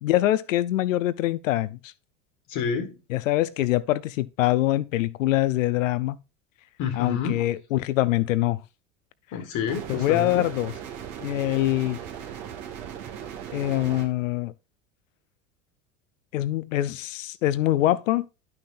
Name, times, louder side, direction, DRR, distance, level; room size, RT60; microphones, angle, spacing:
voice 1, 0.0-1.9 3.1-6.2 7.0-8.6 9.9-10.7 11.2-12.0 13.5-14.5 16.3-18.3, left 15 dB, 75° left, 0.7 m, -24 dB
voice 2, 2.5-3.0 6.8-7.5 9.3-10.5, left 7 dB, 50° left, 1.7 m, -28 dB
sound 1, 9.7-14.1, right 9 dB, 65° right, 1.9 m, -38 dB
11.5 x 5.9 x 2.5 m
hypercardioid pair, 85°, 40 cm